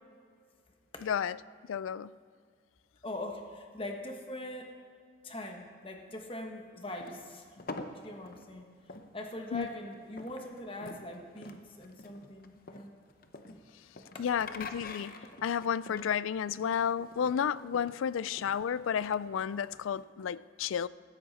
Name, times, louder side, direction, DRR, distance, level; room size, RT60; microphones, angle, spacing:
voice 1, 1.0-1.4 1.7-2.1 9.5-9.7 14.2-15.1 15.4-20.9, left 8 dB, 80° left, 19 dB, 0.3 m, -32 dB
voice 2, 3.0-4.8 5.2-7.6 7.9-8.7 9.1-12.9 14.1-14.2, left 1 dB, 25° left, 3 dB, 1.3 m, -42 dB
sound 1, 7.0-20.0, left 3 dB, 45° left, 0.8 m, -47 dB
16.5 x 13.5 x 4.2 m, 2.1 s
head